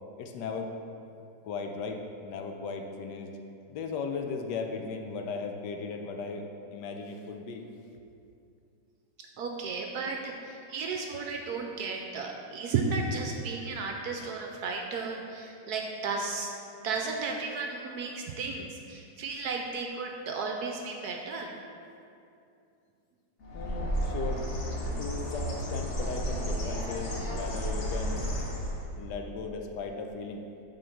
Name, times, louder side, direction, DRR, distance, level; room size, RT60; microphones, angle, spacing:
voice 1, 0.2-0.7 1.4-3.3 3.7-7.6 23.5-24.4 25.0-28.3 29.0-30.4, left 4 dB, 75° left, 4 dB, 1.2 m, -37 dB
voice 2, 9.2-16.5 16.8-21.6, right 4 dB, 70° right, 2 dB, 1.0 m, -34 dB
Bird, 23.4-29.0, equal, 45° left, 1.2 m, -32 dB
7.9 x 3.9 x 5.7 m, 2.6 s
omnidirectional pair, 2.0 m